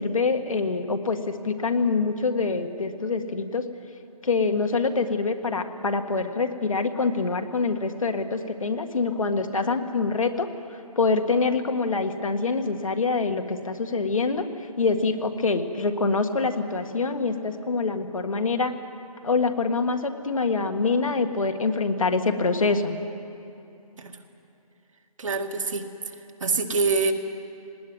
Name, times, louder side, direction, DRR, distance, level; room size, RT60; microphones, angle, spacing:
voice 1, 0.0-3.7 4.2-14.5 14.8-18.7 19.2-23.0, left 4 dB, 60° left, 6 dB, 1.7 m, -25 dB
voice 2, 25.2-25.9 26.4-27.1, right 4 dB, 55° right, 4 dB, 2.0 m, -25 dB
19.5 x 18.5 x 9.5 m, 2.7 s
figure-of-eight pair, 160°, 20 cm